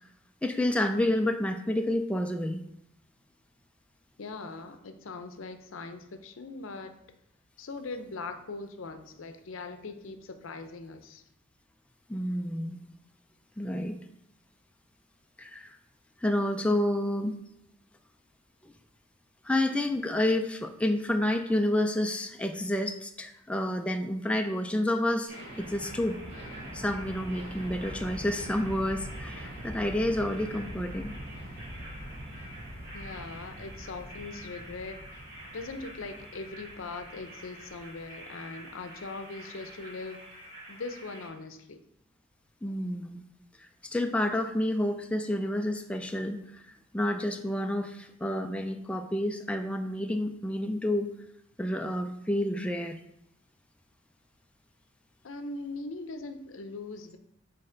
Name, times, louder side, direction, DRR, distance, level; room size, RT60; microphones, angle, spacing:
voice 1, 0.4-2.6 12.1-12.8 13.6-14.0 15.4-15.7 16.2-17.4 18.6-18.7 19.4-26.2 26.7-31.1 42.6-43.2 43.6-51.1 51.6-53.0, left 1 dB, 5° left, 4 dB, 0.3 m, -29 dB
voice 2, 4.2-6.9 7.6-11.2 32.9-35.0 35.5-40.2 40.7-41.8 55.2-57.2, left 3 dB, 70° left, 8 dB, 0.6 m, -40 dB
sound 1, 25.3-41.3, equal, 55° right, 2.3 m, -43 dB
6.4 x 4.2 x 3.8 m, 0.78 s
head